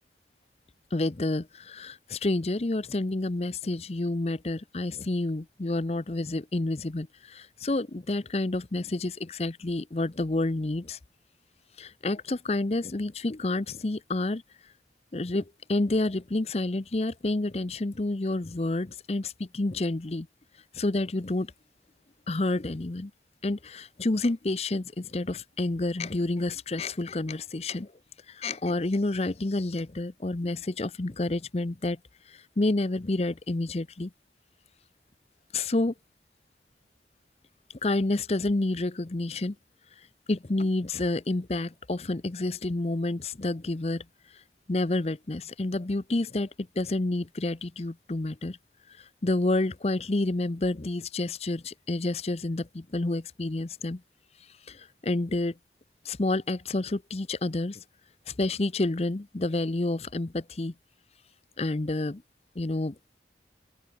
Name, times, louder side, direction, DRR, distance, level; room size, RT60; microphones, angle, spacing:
voice 1, 0.9-11.0 11.8-14.4 15.1-20.3 20.7-21.5 22.3-23.1 23.4-27.9 28.3-32.0 32.3-34.1 35.5-35.9 37.8-39.6 40.3-44.0 44.7-46.5 46.8-48.6 49.2-54.0 54.7-55.5 56.0-57.8 58.3-60.7 61.6-62.2 62.6-62.9, left 2 dB, 35° left, 0.7 m, -29 dB
open air
head